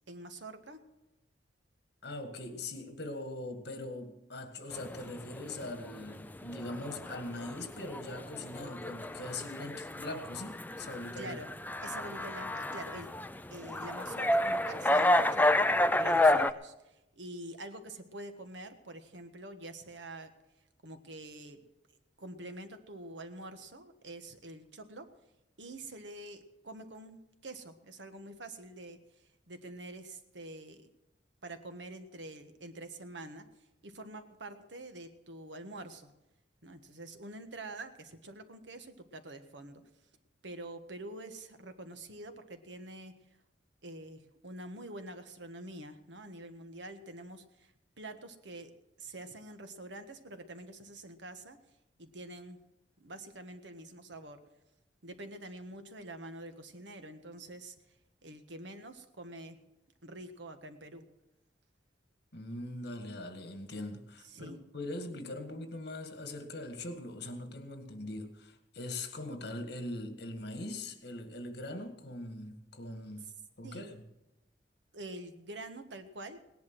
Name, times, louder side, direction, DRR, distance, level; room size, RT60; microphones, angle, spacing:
voice 1, 0.1-0.8 11.2-11.5 11.8-13.1 13.5-15.6 16.0-20.3 20.8-21.6 22.2-25.1 25.6-30.9 31.4-33.5 33.8-36.1 36.6-39.8 40.4-43.1 43.8-48.7 49.0-51.6 52.0-52.6 53.0-54.4 55.0-57.7 58.2-59.6 60.0-61.0 64.2-64.6 73.6-73.9 74.9-76.4, right 2 dB, 80° right, 1.5 m, -46 dB
voice 2, 2.0-11.4 62.3-73.3 73.6-74.0, left 2 dB, 65° left, 1.9 m, -41 dB
sound 1, 4.7-16.5, left 1 dB, 10° left, 0.5 m, -30 dB
18.0 x 10.5 x 6.2 m
head